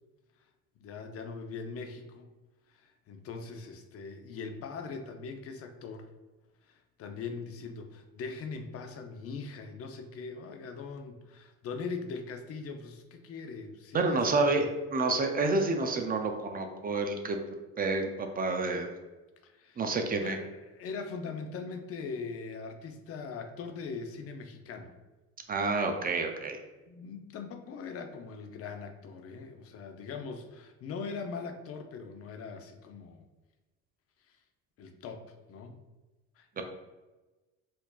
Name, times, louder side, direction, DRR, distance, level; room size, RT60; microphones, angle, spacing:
voice 1, 0.8-2.3 2.7-6.1 7.0-14.7 19.4-19.8 20.2-24.9 26.9-33.2 34.8-35.2 35.5-35.8 36.4-36.6, left 4 dB, 50° left, 6 dB, 0.6 m, -41 dB
voice 2, 13.9-14.6 14.9-17.4 17.8-18.9 19.8-20.4 25.5-26.6 36.6-36.7, right 3 dB, 30° right, 4 dB, 0.5 m, -29 dB
4.4 x 2.7 x 2.3 m, 1.1 s
supercardioid pair, 90°, 29 cm